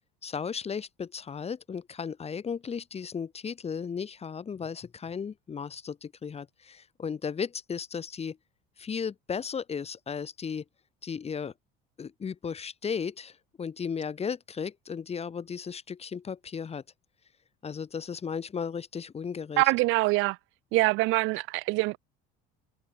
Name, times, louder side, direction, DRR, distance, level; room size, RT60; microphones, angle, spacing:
voice 1, 0.2-8.4 8.8-10.6 11.0-11.5 12.0-16.8 17.6-19.6, left 6 dB, 30° left, 4.8 m, -35 dB
voice 2, 19.6-20.4 20.7-22.0, right 23 dB, 70° right, 1.1 m, -24 dB
supercardioid pair, 115°, 21 cm